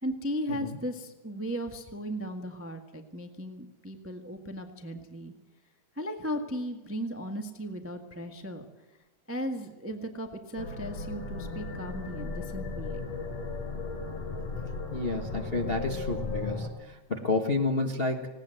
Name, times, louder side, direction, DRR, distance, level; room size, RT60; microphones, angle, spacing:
voice 1, 0.0-5.3 6.0-8.7 9.3-13.0, equal, 10° right, 5 dB, 0.7 m, -36 dB
sound 1, 10.6-16.7, left 3 dB, 55° left, 4.2 m, -36 dB
voice 2, 14.9-18.3, left 3 dB, 40° left, 3 dB, 0.8 m, -30 dB
19.5 x 18.0 x 7.8 m, 1.1 s
omnidirectional pair, 3.4 m